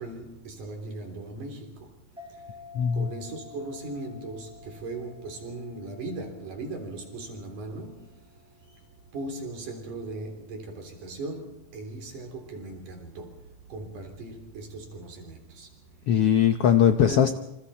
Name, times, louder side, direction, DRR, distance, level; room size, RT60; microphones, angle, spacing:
voice 1, 0.0-2.6 2.9-15.7 16.8-17.4, right 2 dB, 75° right, 5.1 m, -39 dB
sound 1, 2.2-9.2, left 5 dB, ahead, 5.0 m, -51 dB
voice 2, 2.7-3.1 16.1-17.3, left 9 dB, 75° left, 1.3 m, -20 dB
28.0 x 26.5 x 4.3 m
omnidirectional pair, 3.7 m